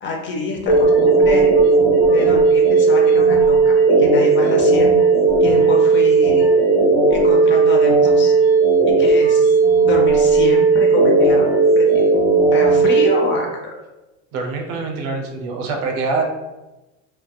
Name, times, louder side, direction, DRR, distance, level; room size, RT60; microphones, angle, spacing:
voice 1, 0.0-1.5 2.1-4.9 5.4-6.5 7.1-8.3 8.8-9.5 9.8-11.5 11.7-12.0 12.5-13.7, left 2 dB, 30° left, 0 dB, 0.5 m, -26 dB
sound 1, 0.7-13.1, right 4 dB, 75° left, 0.8 m, -14 dB
voice 2, 14.3-16.2, right 4 dB, 65° right, 2 dB, 0.6 m, -24 dB
2.7 x 2.2 x 2.2 m, 1.1 s
hypercardioid pair, 95°, 38 cm